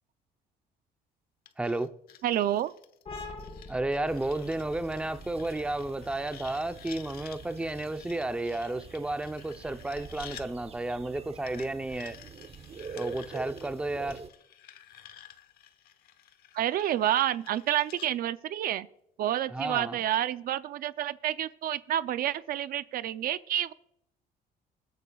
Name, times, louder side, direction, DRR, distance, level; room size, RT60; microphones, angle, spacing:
sound 1, 1.5-10.5 11.5-18.1, left 10 dB, 65° left, 1.1 m, -52 dB
voice 1, 1.6-1.9 3.7-12.2 13.0-14.2 19.5-20.0, right 2 dB, 5° right, 0.6 m, -32 dB
voice 2, 2.2-2.7 16.5-18.9 19.2-23.7, right 12 dB, 60° right, 0.5 m, -29 dB
sound 2, 3.1-10.4, left 3 dB, 35° left, 4.0 m, -47 dB
sound 3, 4.1-14.3, right 6 dB, 35° right, 0.9 m, -46 dB
24.5 x 9.9 x 2.4 m
cardioid pair, 110°, 17 cm